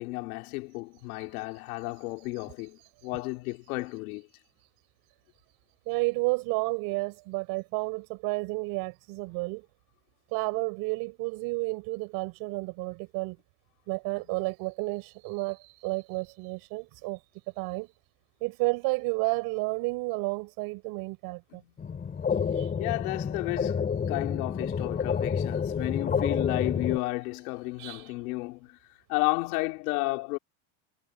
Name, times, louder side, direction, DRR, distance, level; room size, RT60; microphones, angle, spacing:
voice 1, 0.0-4.3 21.5-21.7 22.8-28.8 29.1-30.4, left 24 dB, 85° left, 3.0 m, -32 dB
voice 2, 5.9-9.7 10.3-13.4 13.9-17.2 17.5-17.9 18.4-21.6 22.5-22.7 27.8-28.1, right 26 dB, 60° right, 4.4 m, -31 dB
sound 1, 21.8-27.0, left 6 dB, 20° left, 4.7 m, -29 dB
cardioid pair, 160°, 42 cm